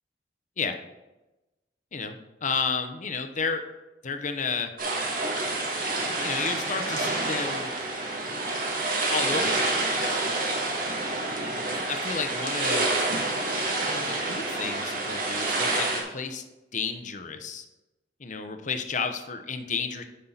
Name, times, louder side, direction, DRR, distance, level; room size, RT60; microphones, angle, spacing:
voice 1, 2.4-3.6 4.0-4.7 6.2-7.7 9.1-10.2 11.7-13.1 13.9-16.4 16.7-17.6 18.2-20.0, left 5 dB, 45° left, 7 dB, 0.8 m, -32 dB
sound 1, 4.8-16.0, right 2 dB, 55° right, 1.8 m, -28 dB
9.7 x 5.6 x 3.9 m, 1.0 s
head